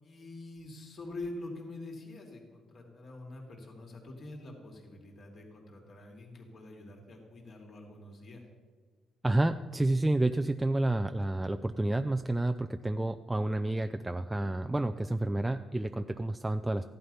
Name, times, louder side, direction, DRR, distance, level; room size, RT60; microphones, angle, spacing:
voice 1, 0.0-8.4, left 2 dB, 40° left, 1 dB, 3.0 m, -45 dB
voice 2, 9.2-16.8, right 2 dB, 10° right, 7 dB, 0.4 m, -30 dB
15.5 x 11.0 x 5.7 m, 1.4 s
cardioid pair, 135°, 0 cm